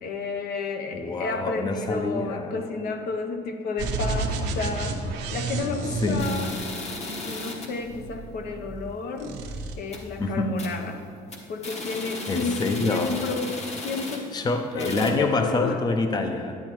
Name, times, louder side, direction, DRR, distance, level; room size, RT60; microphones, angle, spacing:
voice 1, 0.0-5.0 5.3-6.5 7.3-9.3 9.8-11.0 11.5-14.3 14.7-15.8, left 4 dB, 65° left, 6 dB, 0.8 m, -31 dB
voice 2, 0.9-2.6 6.0-6.3 10.2-10.6 12.3-13.1 14.3-16.6, left 3 dB, 25° left, 6 dB, 0.6 m, -26 dB
sound 1, 3.8-7.1 7.8-8.9 9.2-9.8, right 3 dB, 85° right, 0.9 m, -31 dB
sound 2, 6.2-7.8 8.2-8.3 8.6-8.7 9.2-9.4 9.7-10.2 10.6-10.9 11.2-14.5 14.8-15.1, left 2 dB, 40° left, 1.2 m, -36 dB
10.5 x 8.9 x 3.0 m, 2.3 s
cardioid pair, 110°, 17 cm